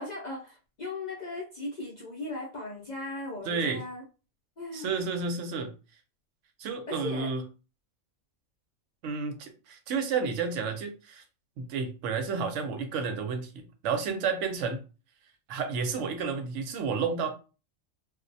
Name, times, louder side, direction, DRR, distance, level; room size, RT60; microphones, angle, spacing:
voice 1, 0.0-4.0 4.6-4.9 6.9-7.3, left 2 dB, 50° left, -5 dB, 0.5 m, -37 dB
voice 2, 3.4-3.8 4.7-5.7 6.6-7.4 9.0-11.2 11.6-14.8 15.5-17.3, right 5 dB, 70° right, 6 dB, 0.8 m, -31 dB
2.4 x 2.1 x 2.6 m, 0.33 s
omnidirectional pair, 1.4 m